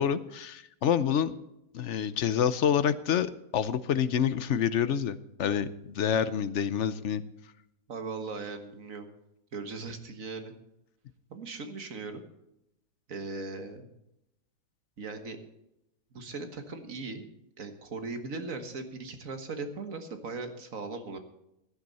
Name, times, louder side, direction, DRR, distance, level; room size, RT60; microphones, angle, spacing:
voice 1, 0.0-1.3 1.7-5.7 5.9-7.2, left 8 dB, 60° left, 14 dB, 0.8 m, -27 dB
voice 2, 7.9-9.1 9.5-10.6 11.3-12.2 13.1-13.9 15.0-15.4 16.1-17.3 17.6-21.2, right 3 dB, 55° right, 7 dB, 1.9 m, -38 dB
16.5 x 10.5 x 4.1 m, 0.84 s
omnidirectional pair, 1.7 m